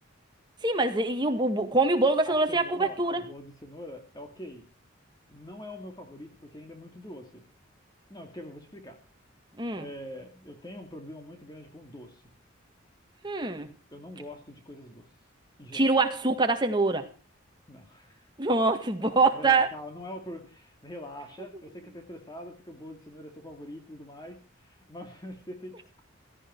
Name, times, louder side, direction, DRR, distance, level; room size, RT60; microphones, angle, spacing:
voice 1, 0.6-3.2 9.6-9.9 13.2-13.7 15.7-17.1 18.4-19.7, right 3 dB, 20° right, 1.9 m, -24 dB
voice 2, 2.2-4.6 5.3-7.4 8.1-9.0 9.8-12.2 13.9-15.1 15.6-15.9 17.7-18.3 19.0-26.0, left 1 dB, 20° left, 2.5 m, -44 dB
17.0 x 14.0 x 4.6 m
head